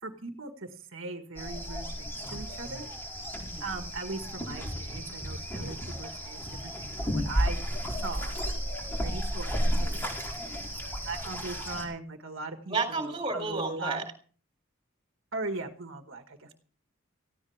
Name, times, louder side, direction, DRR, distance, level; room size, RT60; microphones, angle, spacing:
voice 1, 0.0-2.8 3.6-7.6 7.9-8.4 9.0-10.1 11.0-14.0 15.3-16.5, right 3 dB, 65° right, 4 dB, 1.9 m, -39 dB
sound 1, 1.4-11.9, equal, 10° left, 4.6 m, -33 dB
voice 2, 12.7-14.0, right 3 dB, 25° right, 5 dB, 3.6 m, -31 dB
18.5 x 16.0 x 3.6 m, 0.42 s
head